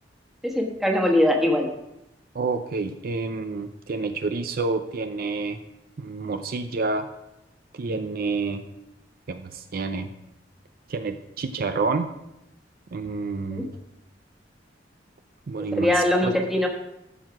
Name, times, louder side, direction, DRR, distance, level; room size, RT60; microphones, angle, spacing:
voice 1, 0.4-1.7 13.5-13.6 15.7-16.7, left 1 dB, ahead, 0 dB, 1.4 m, -21 dB
voice 2, 2.3-5.6 6.0-7.1 7.7-8.7 9.3-10.1 10.9-12.1 12.9-13.8 15.5-16.3, right 3 dB, 55° right, 8 dB, 0.5 m, -29 dB
13.5 x 4.6 x 4.8 m, 0.87 s
head